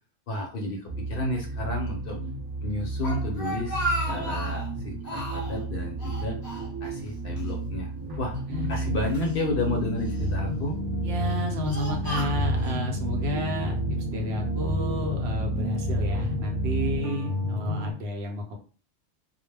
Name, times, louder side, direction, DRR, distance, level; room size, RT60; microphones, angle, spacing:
voice 1, 0.3-2.2 2.6-5.0 5.3-6.4 6.8-7.9 8.2-8.3 8.7-10.8, left 1 dB, 60° left, 1 dB, 0.7 m, -31 dB
sound 1, 0.9-17.0, right 3 dB, 30° right, 0.5 m, -32 dB
Speech, 3.0-4.7 5.0-5.6 6.0-7.1 7.4-7.5 8.3-9.4 10.0-10.5 11.1-12.8, equal, 25° left, 0.6 m, -34 dB
sound 2, 8.5-17.9, left 2 dB, 85° right, 1.0 m, -31 dB
voice 2, 11.0-18.6, equal, 65° right, 1 dB, 0.8 m, -32 dB
2.2 x 2.1 x 3.2 m, 0.38 s
omnidirectional pair, 1.2 m